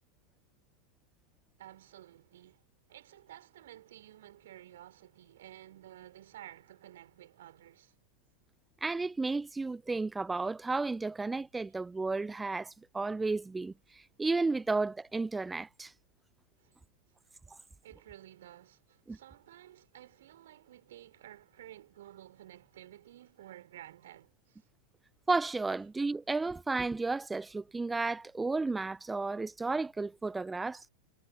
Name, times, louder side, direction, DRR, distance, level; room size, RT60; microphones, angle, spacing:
voice 1, 1.6-2.6 2.9-7.9 16.6-16.8 17.8-24.6, right 13 dB, 60° right, 4.3 m, -53 dB
voice 2, 8.8-13.7 14.2-15.9 19.1-19.2 25.3-30.8, right 3 dB, 10° right, 0.6 m, -33 dB
figure-of-eight pair, 90°, 0 cm